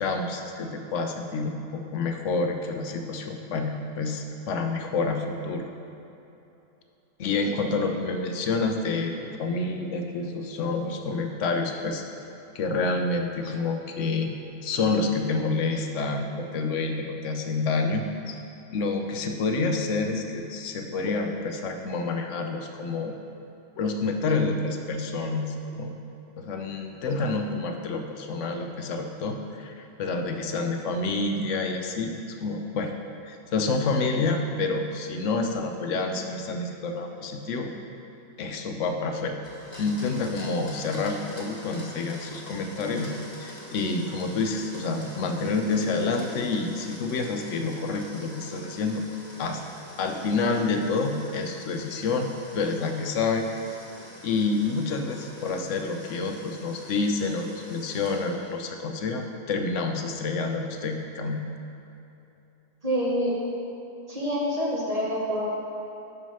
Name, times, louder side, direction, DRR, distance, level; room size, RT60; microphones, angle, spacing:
voice 1, 0.0-5.7 7.2-9.1 9.4-12.0 12.5-14.3 14.6-18.4 18.7-23.1 23.8-25.9 26.4-32.9 33.2-37.7 38.4-39.4 39.8-43.1 43.4-49.0 49.4-49.6 50.0-53.7 54.2-61.4, left 3 dB, 65° left, 4 dB, 0.9 m, -28 dB
Domestic sounds home sounds, 39.4-58.6, left 1 dB, 30° left, 1.2 m, -45 dB
voice 2, 62.8-63.3 64.1-65.5, equal, 30° right, -6 dB, 1.3 m, -27 dB
6.1 x 5.6 x 5.5 m, 2.9 s
omnidirectional pair, 1.5 m